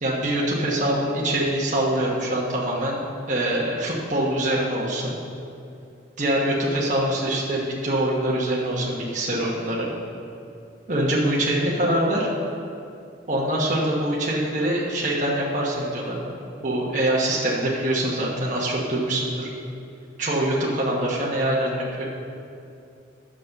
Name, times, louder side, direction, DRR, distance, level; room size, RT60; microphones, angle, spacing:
voice 1, 0.0-5.1 6.2-9.9 10.9-12.3 13.3-16.3 16.6-19.5 20.2-22.1, right 1 dB, 40° right, -4 dB, 1.2 m, -24 dB
8.4 x 6.2 x 6.6 m, 2.7 s
head